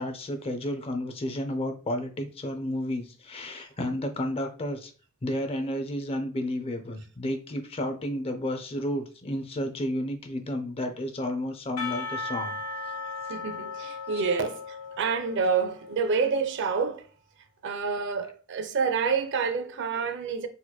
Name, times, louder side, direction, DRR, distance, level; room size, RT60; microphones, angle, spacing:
voice 1, 0.0-4.9 5.2-12.6, left 1 dB, 25° left, 0.5 m, -31 dB
Percussion, 11.8-16.6, left 4 dB, 75° left, 0.6 m, -37 dB
voice 2, 13.3-17.1 17.6-20.5, right 5 dB, 55° right, 0.4 m, -28 dB
4.1 x 2.9 x 2.2 m
head